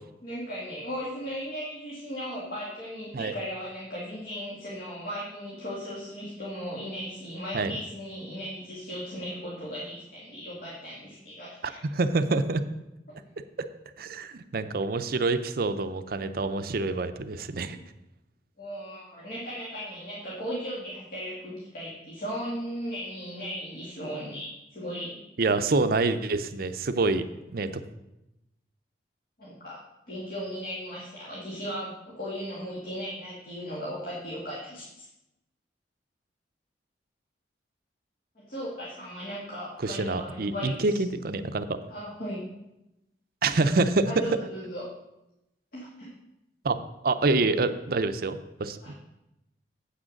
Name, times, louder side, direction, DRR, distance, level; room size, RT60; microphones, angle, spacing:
voice 1, 0.2-11.8 18.6-25.2 29.4-29.8 30.1-35.1 38.4-41.0 41.9-42.4 44.1-44.8 45.7-46.1 48.8-48.9, equal, 50° left, -7 dB, 2.0 m, -37 dB
voice 2, 11.9-12.6 14.0-17.8 25.4-27.2 27.5-27.7 39.8-41.8 43.4-44.3 46.6-46.8 47.0-48.8, right 3 dB, 55° right, 10 dB, 0.6 m, -26 dB
8.0 x 6.2 x 6.5 m, 0.91 s
head